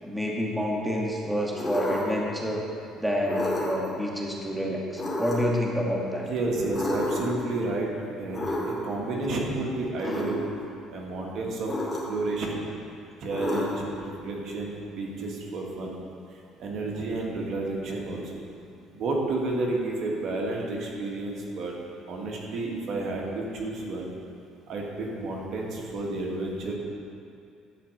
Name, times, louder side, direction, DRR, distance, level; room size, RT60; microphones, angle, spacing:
voice 1, 0.0-2.7 2.9-6.3, equal, 5° right, -2 dB, 1.6 m, -28 dB
sound 1, 1.6-2.2 3.2-3.9 5.0-5.6 6.7-7.4 8.3-9.0 10.0-10.4 11.7-12.3 13.3-14.0, left 1 dB, 20° left, 2.5 m, -30 dB
voice 2, 6.3-7.9 8.2-10.5 10.9-11.7 12.1-12.7 13.2-16.0 16.6-18.4 18.9-21.7 22.1-24.1 24.7-26.8, right 2 dB, 60° right, -2 dB, 1.9 m, -31 dB
12.0 x 4.5 x 8.0 m, 2.5 s
cardioid pair, 100°, 0 cm